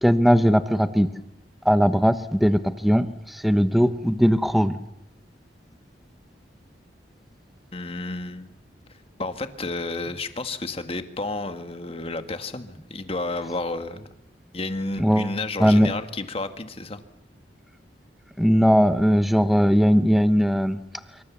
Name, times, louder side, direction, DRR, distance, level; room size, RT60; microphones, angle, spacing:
voice 1, 0.0-1.1 1.6-4.8 15.0-15.3 15.6-15.9 18.4-20.8, equal, ahead, 10 dB, 1.0 m, -19 dB
voice 2, 7.7-8.5 9.2-14.1 14.5-17.0, left 2 dB, 35° left, 8 dB, 1.7 m, -31 dB
25.5 x 24.5 x 7.3 m, 0.85 s
head